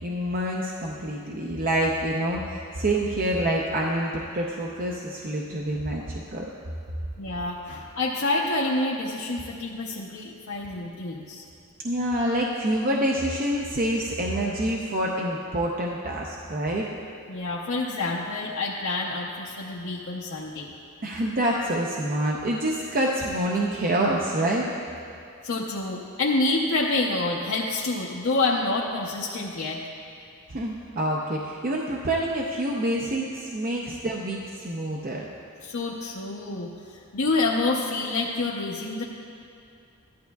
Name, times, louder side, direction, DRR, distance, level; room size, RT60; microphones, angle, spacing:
voice 1, 0.0-6.4 11.8-16.9 21.0-24.7 30.5-35.3, right 1 dB, 40° right, -2 dB, 0.6 m, -27 dB
voice 2, 7.2-11.4 17.3-20.7 25.4-29.8 35.6-36.7 37.1-39.0, left 2 dB, 65° left, -4 dB, 0.7 m, -27 dB
14.5 x 11.5 x 2.3 m, 2.4 s
head